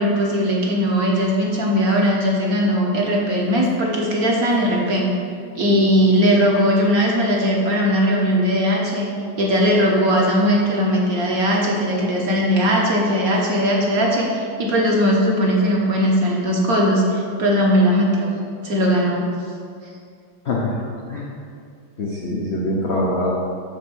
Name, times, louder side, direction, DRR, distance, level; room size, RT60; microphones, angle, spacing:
voice 1, 0.0-5.1 5.5-9.1 9.4-18.4 18.6-19.3, equal, 55° right, -2 dB, 1.1 m, -19 dB
voice 2, 20.4-20.8 21.1-21.3 22.0-23.3, left 1 dB, 80° left, -3 dB, 0.6 m, -23 dB
8.1 x 3.4 x 6.2 m, 2.3 s
omnidirectional pair, 2.3 m